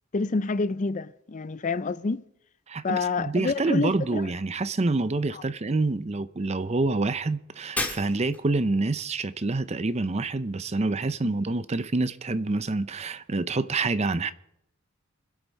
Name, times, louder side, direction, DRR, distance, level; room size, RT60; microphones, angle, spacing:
voice 1, 0.1-2.2 2.8-4.3 5.3-5.4, left 4 dB, 35° left, 0.4 m, -28 dB
voice 2, 2.7-14.3, right 3 dB, 30° right, 0.6 m, -27 dB
Shatter, 7.8-8.6, left 2 dB, 5° left, 1.6 m, -31 dB
24.0 x 8.2 x 5.3 m
head